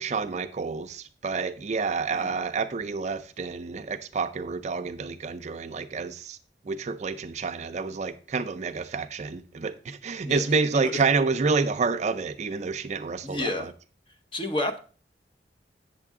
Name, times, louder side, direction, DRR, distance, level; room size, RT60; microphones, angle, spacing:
voice 1, 0.0-6.4 6.7-13.7, right 4 dB, 40° right, 0.4 m, -28 dB
voice 2, 13.2-13.7 14.3-14.8, left 2 dB, 30° left, 0.8 m, -30 dB
8.1 x 6.8 x 3.6 m
head